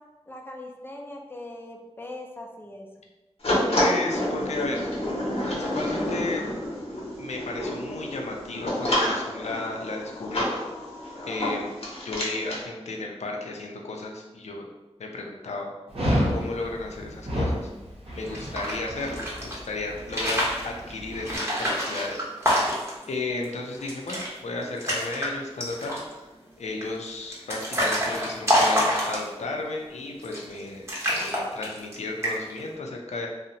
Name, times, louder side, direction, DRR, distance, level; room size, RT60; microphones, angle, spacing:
voice 1, 0.3-2.9, left 1 dB, 20° left, 1 dB, 0.4 m, -40 dB
sound 1, 3.4-12.6, left 1 dB, 60° left, 0.7 m, -29 dB
voice 2, 3.7-4.8 5.4-6.4 7.2-10.5 11.3-11.7 12.0-14.7 15.0-15.7 16.3-17.7 18.1-22.3 23.1-26.3 26.6-33.3, left 2 dB, 85° left, 1 dB, 0.4 m, -33 dB
Dog, 15.9-21.3, equal, 60° right, 0.6 m, -30 dB
sound 2, 18.2-19.6 20.0-20.7 21.2-23.0 23.4-23.5 23.8-24.3 24.6-25.3 25.6-26.1 26.8-29.5 30.2-30.6 30.9-32.0 32.2-32.6, equal, 25° right, 0.8 m, -26 dB
2.7 x 2.0 x 2.6 m, 1.1 s
wide cardioid pair, 65°, 11 cm